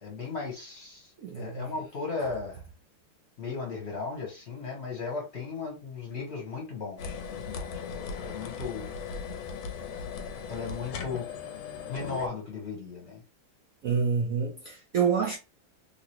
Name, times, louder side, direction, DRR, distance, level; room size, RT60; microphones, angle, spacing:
voice 1, 0.0-2.6 3.4-8.8 9.3-9.4 10.5-11.3 11.9-13.2, left 4 dB, 40° left, 1.2 m, -36 dB
voice 2, 1.2-1.7 13.8-15.4, right 6 dB, 65° right, 0.8 m, -27 dB
sound 1, 7.0-12.3, left 6 dB, 90° left, 1.4 m, -38 dB
3.1 x 2.9 x 2.9 m
omnidirectional pair, 2.1 m